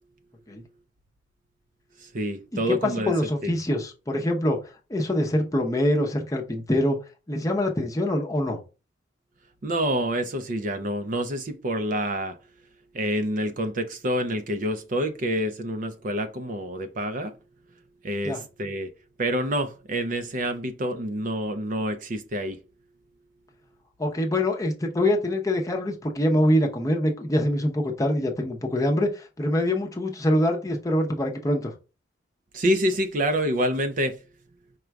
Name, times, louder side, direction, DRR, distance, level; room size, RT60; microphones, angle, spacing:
voice 1, 2.0-3.1 3.4-3.5 9.6-12.4 12.9-17.3 18.0-18.9 19.2-22.6 32.5-34.2, equal, 45° right, 0.5 m, -27 dB
voice 2, 2.5-4.6 4.9-7.0 7.3-8.6 18.2-18.4 24.0-31.7, left 1 dB, 15° left, 0.7 m, -24 dB
5.0 x 2.3 x 4.5 m
head